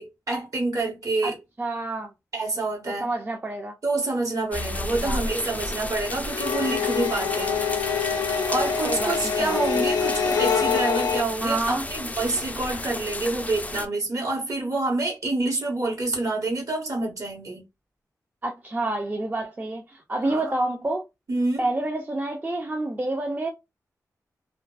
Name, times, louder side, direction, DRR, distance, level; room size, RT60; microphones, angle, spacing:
voice 1, 0.0-1.4 2.3-3.1 3.8-7.5 8.5-17.6 20.2-20.5 21.3-21.6, right 2 dB, 60° right, 1.2 m, -27 dB
voice 2, 1.2-2.1 3.0-3.7 4.9-5.2 8.8-9.8 11.4-11.9 18.4-21.0 21.6-23.5, right 2 dB, 30° right, 0.5 m, -28 dB
sound 1, 4.5-13.9, left 2 dB, 25° left, 0.4 m, -33 dB
sound 2, 6.3-11.2, left 6 dB, 85° left, 0.4 m, -25 dB
2.4 x 2.2 x 2.4 m
cardioid pair, 50°, 7 cm